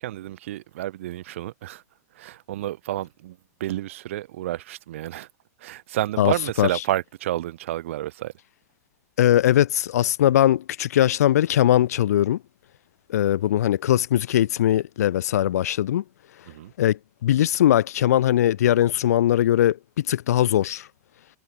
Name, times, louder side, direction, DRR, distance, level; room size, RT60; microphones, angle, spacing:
voice 1, 0.0-1.8 2.2-5.3 5.6-8.3 16.5-16.7, right 14 dB, 55° right, 2.2 m, -30 dB
voice 2, 6.2-6.7 9.2-12.4 13.1-16.0 16.8-20.9, left 12 dB, 70° left, 0.6 m, -20 dB
supercardioid pair, 175°, 9 cm